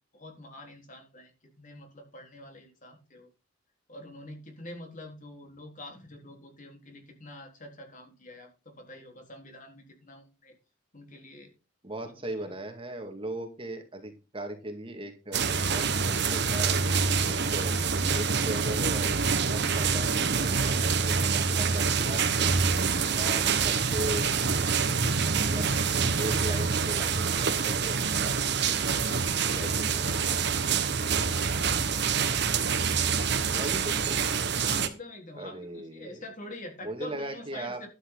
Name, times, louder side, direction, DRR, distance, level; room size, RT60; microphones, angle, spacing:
voice 1, 0.1-1.3 1.6-3.3 3.9-10.5 10.9-11.5 12.0-12.5 23.1-23.6 24.2-25.2 29.6-29.9 30.8-31.7 34.6-37.9, left 1 dB, 40° left, 3 dB, 3.9 m, -46 dB
voice 2, 11.8-16.7 17.2-19.1 19.4-22.6 23.1-24.3 25.2-25.7 26.2-28.3 29.5-30.2 33.5-34.2 35.3-36.2 36.8-37.8, right 1 dB, 30° right, 5 dB, 2.1 m, -38 dB
sound 1, 15.3-34.9, right 5 dB, 60° right, 1.5 m, -26 dB
12.0 x 8.7 x 3.9 m, 0.31 s
head